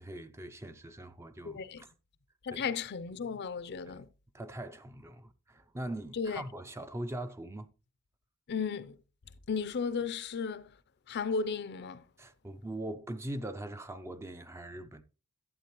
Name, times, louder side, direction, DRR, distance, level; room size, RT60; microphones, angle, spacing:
voice 1, 0.0-1.9 2.5-2.6 3.9-4.0 4.3-7.7 12.2-15.0, right 1 dB, 10° right, 0.4 m, -41 dB
voice 2, 1.5-1.8 2.4-4.1 6.1-6.4 8.5-9.0 9.5-10.8 11.1-12.0, left 5 dB, 50° left, 0.5 m, -34 dB
11.5 x 8.3 x 3.0 m
head